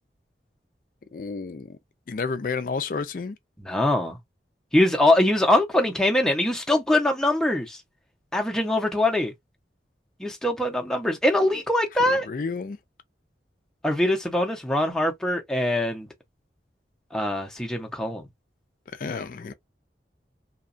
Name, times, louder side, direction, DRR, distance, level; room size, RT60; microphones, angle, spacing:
voice 1, 1.1-1.8 2.1-3.4 12.1-12.8 18.9-19.5, left 4 dB, 50° left, 0.4 m, -31 dB
voice 2, 3.6-4.2 4.7-7.8 8.3-9.3 10.2-12.3 13.8-16.1 17.1-18.2, left 1 dB, 5° left, 0.6 m, -23 dB
2.9 x 2.2 x 2.4 m
head